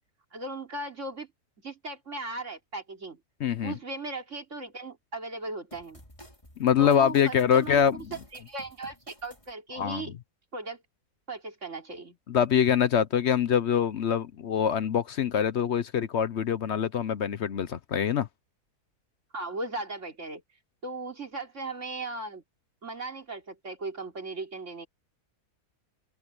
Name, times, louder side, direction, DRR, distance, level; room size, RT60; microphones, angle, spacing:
voice 1, 0.3-1.3 1.6-3.2 3.6-6.0 6.8-8.0 8.3-10.2 10.5-10.8 11.3-12.2 19.3-20.4 20.8-22.4 22.8-24.9, right 2 dB, 50° right, 3.5 m, -37 dB
voice 2, 3.4-3.7 6.6-8.1 9.7-10.0 12.3-18.3, left 8 dB, 55° left, 0.9 m, -24 dB
sound 1, 5.7-9.5, left 1 dB, 20° left, 3.7 m, -51 dB
open air
omnidirectional pair, 1.6 m